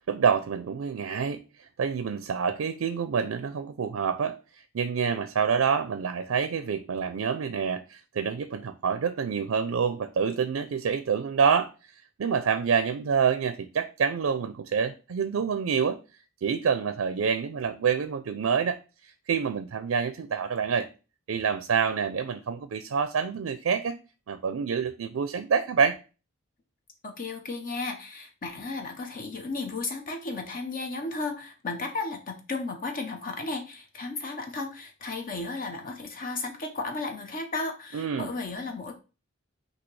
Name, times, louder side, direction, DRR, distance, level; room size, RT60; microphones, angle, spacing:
voice 1, 0.1-11.7 12.2-16.0 16.4-20.9 21.3-24.0 24.3-26.0 37.9-38.3, right 6 dB, 80° right, 0.4 m, -27 dB
voice 2, 27.0-38.9, left 3 dB, 45° left, 0.7 m, -34 dB
6.1 x 2.7 x 3.1 m
head